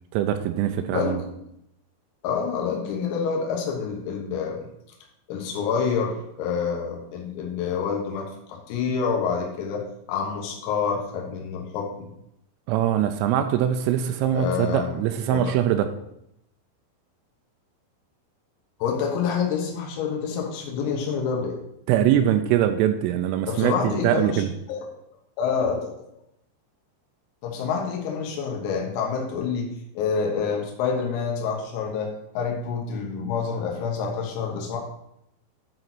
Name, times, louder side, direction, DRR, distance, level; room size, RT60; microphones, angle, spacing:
voice 1, 0.1-1.2 12.7-15.9 21.9-24.5, right 10 dB, 85° right, 8 dB, 3.1 m, -22 dB
voice 2, 2.2-4.6 5.3-9.8 10.1-12.1 14.3-14.9 15.3-15.4 18.8-21.6 23.5-24.4 24.7-24.8 25.4-25.9 27.4-34.8, left 6 dB, 90° left, 0 dB, 4.1 m, -27 dB
10.5 x 4.1 x 6.1 m, 0.79 s
omnidirectional pair, 5.9 m